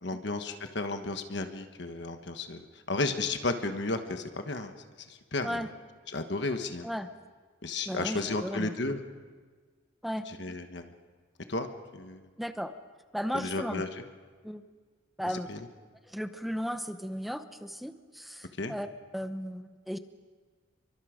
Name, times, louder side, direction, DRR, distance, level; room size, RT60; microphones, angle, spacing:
voice 1, 0.0-4.7 5.0-5.7 6.1-6.9 7.6-9.0 10.3-10.9 11.5-12.3 13.3-13.9 15.5-15.6 18.6-18.7, left 2 dB, 60° left, 7 dB, 1.3 m, -33 dB
voice 2, 7.9-8.7 10.0-10.3 12.4-12.7 13.1-13.8 14.4-14.6 15.2-15.5 16.1-18.9 19.1-20.0, equal, ahead, 9 dB, 0.8 m, -35 dB
28.5 x 24.0 x 5.1 m, 1.5 s
head